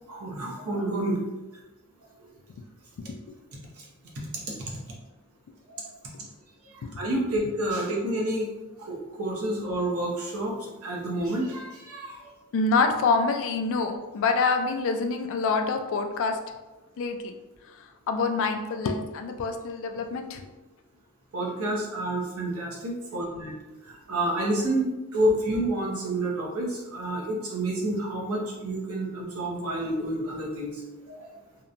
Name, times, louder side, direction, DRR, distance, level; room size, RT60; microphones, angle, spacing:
voice 1, 0.1-1.2 5.7-5.8 7.0-8.5 8.8-12.3 21.3-23.5 23.9-30.7 31.1-31.3, right 1 dB, 75° right, -2 dB, 0.7 m, -29 dB
voice 2, 12.5-16.4 17.0-17.3 17.7-20.5, left 4 dB, 65° left, 6 dB, 0.3 m, -26 dB
2.8 x 2.1 x 2.4 m, 1.1 s
head